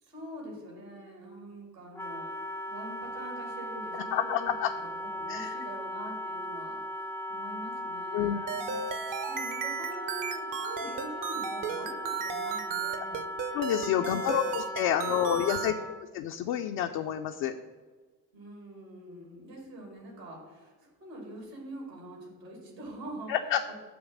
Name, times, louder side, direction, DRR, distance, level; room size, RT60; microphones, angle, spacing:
voice 1, 0.0-2.3 2.7-6.8 7.3-8.8 9.3-13.2 13.8-14.4 14.8-15.9 18.3-20.7 21.0-23.3, right 1 dB, 80° right, -1 dB, 2.2 m, -44 dB
Wind instrument woodwind instrument, 1.9-16.0, equal, 5° left, 0.5 m, -38 dB
voice 2, 4.1-4.7 5.3-5.5 8.1-8.4 13.5-17.5 23.3-23.7, left 10 dB, 50° left, 5 dB, 0.5 m, -29 dB
sound 1, 8.5-15.7, right 6 dB, 40° right, 0.7 m, -35 dB
8.7 x 3.2 x 6.1 m, 1.4 s
figure-of-eight pair, 45°, 50 cm